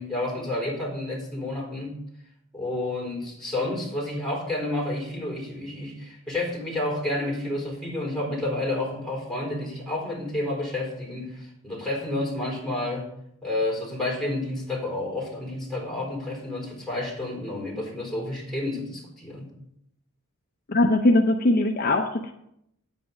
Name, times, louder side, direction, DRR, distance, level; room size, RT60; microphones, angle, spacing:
voice 1, 0.0-2.0 2.5-13.1 13.4-19.5, left 1 dB, 5° left, -2 dB, 4.0 m, -30 dB
voice 2, 20.7-22.3, left 2 dB, 45° left, 3 dB, 0.7 m, -21 dB
9.1 x 8.3 x 5.3 m, 0.76 s
head